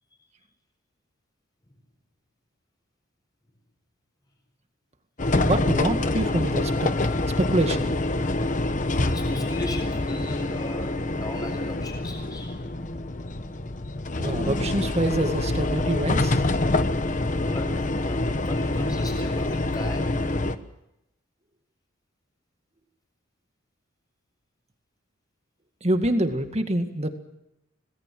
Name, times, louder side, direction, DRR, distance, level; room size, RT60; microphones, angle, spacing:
sound 1, 5.2-20.6, left 2 dB, 40° left, 1.1 m, -26 dB
voice 1, 5.3-6.9 7.4-7.9 14.2-16.4 25.8-27.1, right 1 dB, 30° right, 7 dB, 2.0 m, -25 dB
voice 2, 9.1-12.5 17.3-20.2, left 1 dB, 20° left, 2 dB, 6.9 m, -36 dB
26.5 x 19.0 x 7.7 m, 0.89 s
head